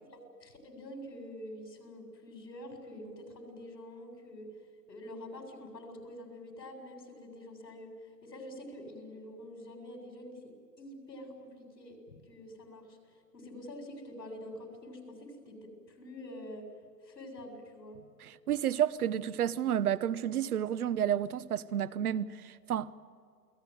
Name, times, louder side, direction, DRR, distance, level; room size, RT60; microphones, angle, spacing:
voice 1, 0.1-4.5 4.9-7.9 8.2-13.0 13.3-16.7 17.0-18.0, left 1 dB, 85° left, 7.6 m, -46 dB
voice 2, 18.2-23.0, right 10 dB, 60° right, 1.1 m, -31 dB
29.5 x 19.0 x 9.4 m
hypercardioid pair, 135°, 49 cm